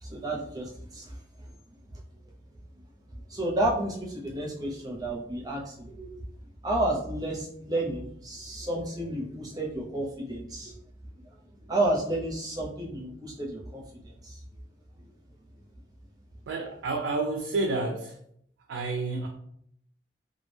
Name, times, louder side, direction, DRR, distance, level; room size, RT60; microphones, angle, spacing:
voice 1, 0.0-1.5 3.3-6.2 6.6-10.7 11.6-14.4, right 1 dB, 20° right, -2 dB, 0.5 m, -31 dB
voice 2, 16.5-18.2 18.7-19.3, right 3 dB, 85° right, 2 dB, 0.3 m, -29 dB
2.2 x 2.1 x 3.1 m, 0.67 s
head